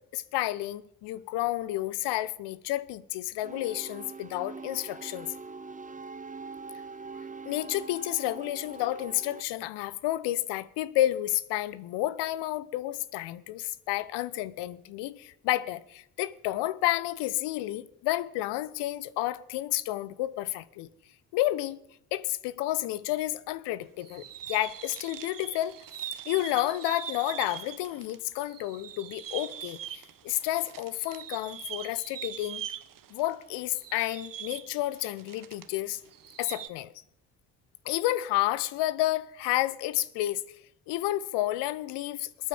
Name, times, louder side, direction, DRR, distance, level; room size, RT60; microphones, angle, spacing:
voice 1, 0.1-5.3 7.4-20.9 21.3-21.8 22.1-25.8 26.3-32.6 33.1-36.0 36.4-36.9 37.8-40.4 40.9-42.5, left 15 dB, 65° left, 1.0 m, -30 dB
sound 1, 3.4-9.4, right 4 dB, 15° right, 0.8 m, -43 dB
sound 2, 24.0-28.2 28.4-35.8 36.1-36.7, right 10 dB, 45° right, 1.3 m, -42 dB
27.5 x 9.4 x 5.3 m
figure-of-eight pair, 45°, 44 cm